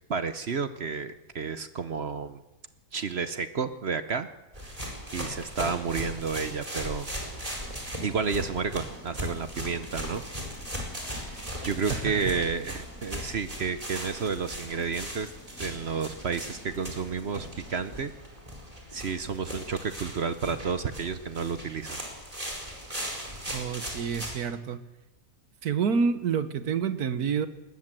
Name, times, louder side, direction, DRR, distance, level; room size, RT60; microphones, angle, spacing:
voice 1, 0.1-2.4 2.9-4.3 5.1-7.1 8.0-10.2 11.2-15.3 15.6-18.1 18.9-22.0, right 5 dB, 50° right, 11 dB, 0.9 m, -31 dB
sound 1, 4.5-24.4, equal, 20° right, 4.9 m, -38 dB
sound 2, 7.5-18.0, left 3 dB, 55° left, 5.1 m, -53 dB
voice 2, 11.9-12.3 23.5-24.8 25.6-27.5, right 6 dB, 75° right, 12 dB, 1.6 m, -28 dB
20.0 x 20.0 x 7.6 m, 1.1 s
omnidirectional pair, 1.7 m